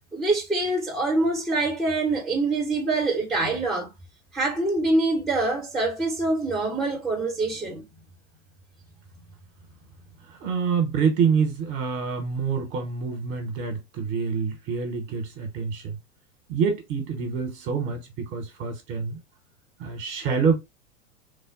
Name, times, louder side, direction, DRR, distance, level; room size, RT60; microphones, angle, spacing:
voice 1, 0.1-3.9 4.3-7.8, right 2 dB, ahead, 0.8 m, -25 dB
voice 2, 10.2-16.0 16.5-19.2 19.8-20.6, right 6 dB, 30° right, 1.0 m, -26 dB
3.3 x 2.1 x 3.8 m
figure-of-eight pair, 100°, 43 cm